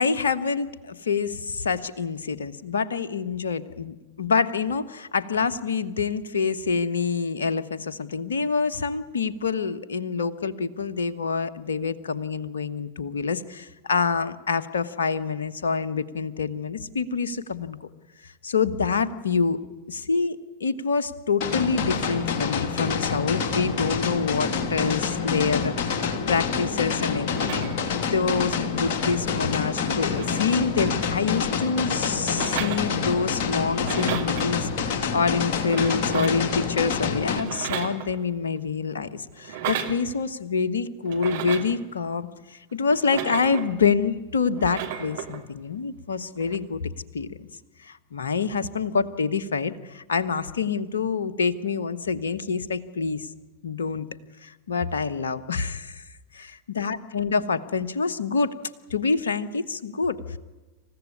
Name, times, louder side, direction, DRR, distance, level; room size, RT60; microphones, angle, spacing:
voice 1, 0.0-17.9 18.4-19.6 19.9-34.7 35.1-46.8 47.1-47.5 47.8-53.3 53.6-54.1 54.4-56.0 56.3-58.5 58.9-60.4, left 5 dB, 65° left, 11 dB, 1.3 m, -26 dB
sound 1, 21.4-37.4, left 5 dB, 45° left, 3.1 m, -27 dB
sound 2, 27.3-28.0 29.1-29.2 29.4-31.4 32.3-33.4 33.7-34.5 35.5-36.5 37.3-38.4 39.4-40.0 41.1-41.8 42.9-43.8 44.5-45.4 46.4-46.6, right 10 dB, 55° right, 2.9 m, -34 dB
27.5 x 15.5 x 9.7 m, 1.2 s
figure-of-eight pair, 90°, 0 cm